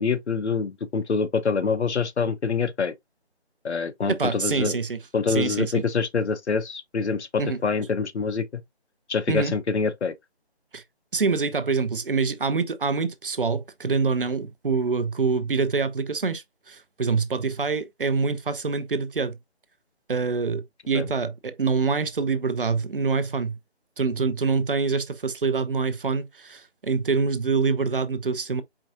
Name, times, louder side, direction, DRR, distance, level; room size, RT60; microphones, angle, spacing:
voice 1, 0.0-2.9 3.6-4.8 5.1-8.6 9.1-10.1 20.9-21.1, left 5 dB, 85° left, 0.8 m, -25 dB
voice 2, 4.1-5.0 5.3-5.8 7.4-7.6 9.3-9.5 10.7-10.8 11.1-19.4 20.1-23.6 24.0-28.6, right 4 dB, 55° right, 0.6 m, -25 dB
4.7 x 3.5 x 2.6 m
figure-of-eight pair, 170°, 33 cm